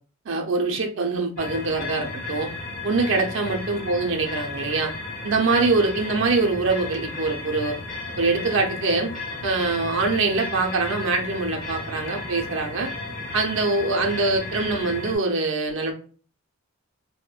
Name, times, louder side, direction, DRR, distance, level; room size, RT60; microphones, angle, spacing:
voice 1, 0.3-2.5 2.8-4.9 5.2-7.8 8.2-9.1 9.4-12.9 13.3-15.9, right 3 dB, 55° right, 2 dB, 0.5 m, -24 dB
sound 1, 1.4-15.2, left 2 dB, 40° left, 0.7 m, -34 dB
3.4 x 2.1 x 2.3 m, 0.41 s
head